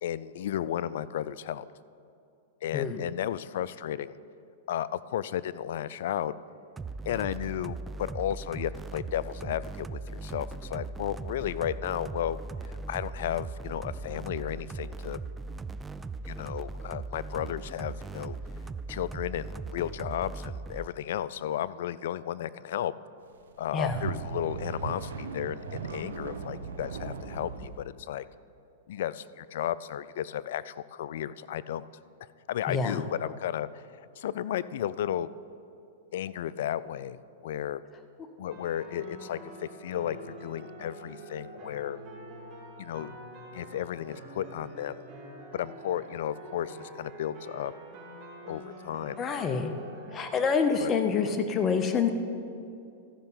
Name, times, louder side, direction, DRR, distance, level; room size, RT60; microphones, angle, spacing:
voice 1, 0.0-1.7 2.6-4.2 4.7-6.3 7.0-12.4 12.6-15.2 16.3-18.4 18.9-22.9 23.6-28.3 28.9-31.9 32.5-35.3 36.1-37.8 38.4-42.0 42.8-43.1 43.5-45.0 45.5-47.7 48.4-49.2 50.8-50.9, left 11 dB, 70° left, 17 dB, 0.3 m, -34 dB
sound 1, 6.8-20.9, right 3 dB, 15° right, 0.3 m, -39 dB
mp bullroarer, 23.5-27.8, right 6 dB, 85° right, 0.8 m, -38 dB
voice 2, 32.7-33.0 49.2-49.7 50.1-52.1, left 5 dB, 25° left, 8 dB, 0.7 m, -27 dB
sound 2, 38.5-50.3, right 1 dB, 35° right, 2.8 m, -46 dB
13.5 x 5.4 x 5.6 m, 2.5 s
hypercardioid pair, 120°, 0 cm